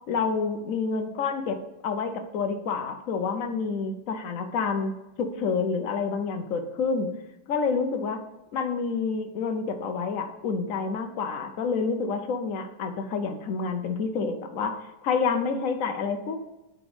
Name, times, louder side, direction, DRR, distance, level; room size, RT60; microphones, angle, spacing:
voice 1, 0.1-7.1 7.5-8.2 8.5-16.4, left 5 dB, 65° left, 6 dB, 0.8 m, -28 dB
9.7 x 3.7 x 5.1 m, 0.97 s
omnidirectional pair, 2.2 m